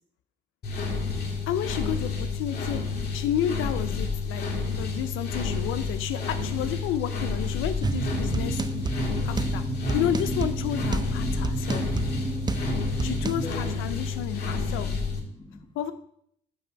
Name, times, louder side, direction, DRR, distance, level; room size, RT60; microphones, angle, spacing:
sound 1, 0.6-15.2, left 4 dB, 55° left, 2.3 m, -30 dB
voice 1, 1.5-2.8 3.1-4.4 4.7-8.8 9.2-9.6 9.9-11.8 13.0-14.9 15.8-15.9, left 10 dB, 90° left, 10 dB, 0.5 m, -31 dB
sound 2, 7.8-13.5, right 4 dB, 20° right, 0.5 m, -30 dB
voice 2, 13.4-15.9, left 3 dB, 25° left, 4 dB, 1.5 m, -44 dB
9.7 x 3.4 x 6.8 m, 0.69 s
cardioid pair, 90°, 20 cm